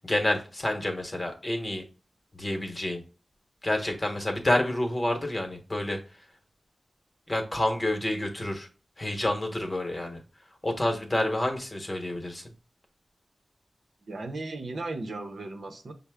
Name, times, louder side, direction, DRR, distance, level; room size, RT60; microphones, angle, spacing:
voice 1, 0.0-1.8 2.3-3.0 3.6-6.0 7.3-8.7 9.0-10.2 10.6-12.4, left 1 dB, 30° left, 3 dB, 1.0 m, -28 dB
voice 2, 14.1-15.9, right 2 dB, 75° right, 5 dB, 0.6 m, -36 dB
5.5 x 2.0 x 3.4 m, 0.36 s
cardioid pair, 50°, 0 cm